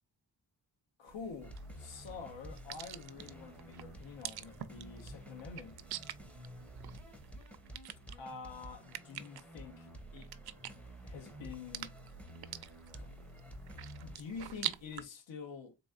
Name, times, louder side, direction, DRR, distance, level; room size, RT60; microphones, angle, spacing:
voice 1, 1.0-5.8 8.1-10.3 11.0-11.9 12.9-13.1 14.0-15.8, left 5 dB, 90° left, 1.0 m, -47 dB
sound 1, 1.1-15.0, right 11 dB, 60° right, 0.5 m, -47 dB
sound 2, 1.4-14.2, equal, 5° left, 0.5 m, -51 dB
4.0 x 3.4 x 2.3 m
wide cardioid pair, 145°, 43 cm